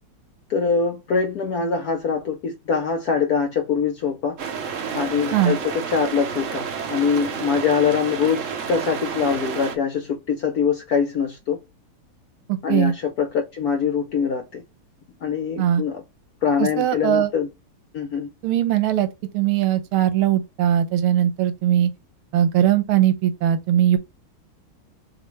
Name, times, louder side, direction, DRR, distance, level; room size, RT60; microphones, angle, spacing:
voice 1, 0.5-4.4 4.9-11.6 12.6-14.6 15.2-16.0 16.4-17.5 17.9-18.3, left 6 dB, 70° left, 0.9 m, -23 dB
sound 1, 4.4-9.8, right 6 dB, 65° right, 0.7 m, -30 dB
voice 2, 12.5-12.9 15.6-15.8 16.6-17.3 18.4-19.1 19.3-21.9 22.3-24.0, right 11 dB, 90° right, 1.6 m, -20 dB
6.6 x 2.6 x 3.1 m
omnidirectional pair, 2.3 m